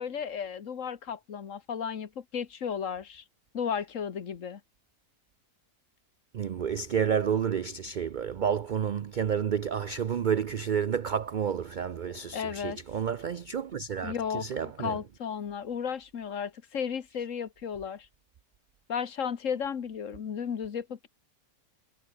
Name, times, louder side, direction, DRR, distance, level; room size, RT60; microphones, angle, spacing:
voice 1, 0.0-3.2 3.5-4.6 12.3-12.8 14.0-14.5 14.8-18.1 18.9-21.1, left 7 dB, 60° left, 1.5 m, -34 dB
voice 2, 6.3-15.0, right 7 dB, 80° right, 0.4 m, -30 dB
omnidirectional pair, 1.6 m